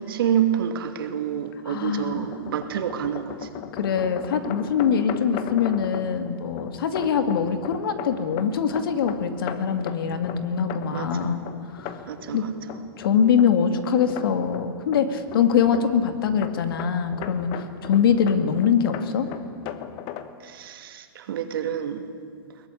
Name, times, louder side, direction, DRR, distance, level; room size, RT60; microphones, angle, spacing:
voice 1, 0.0-3.5 10.9-11.4 12.0-12.5 20.4-22.1, right 9 dB, 65° right, 7 dB, 2.5 m, -28 dB
voice 2, 1.7-2.3 3.8-11.4 11.7-12.0 12.3-12.4 13.0-19.3, left 7 dB, 65° left, 8 dB, 2.3 m, -23 dB
sound 1, 1.8-20.3, left 10 dB, 35° left, 1.3 m, -38 dB
22.0 x 19.0 x 10.0 m, 2.1 s
hypercardioid pair, 150°, 13 cm